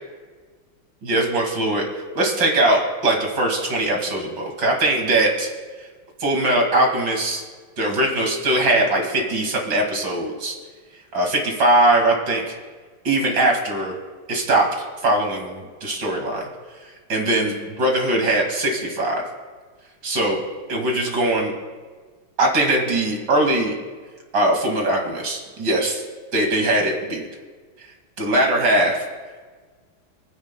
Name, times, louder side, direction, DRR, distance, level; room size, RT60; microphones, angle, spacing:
voice 1, 1.0-1.8 2.2-5.5 6.2-7.4 7.8-10.6 11.1-12.6 13.0-13.9 14.3-14.7 15.0-16.4 17.1-19.2 20.0-20.4 20.7-21.5 22.4-23.7 24.3-26.0 26.3-27.2 28.2-29.0, right 1 dB, 60° right, 1 dB, 2.8 m, -21 dB
29.5 x 10.0 x 2.2 m, 1.5 s
omnidirectional pair, 2.2 m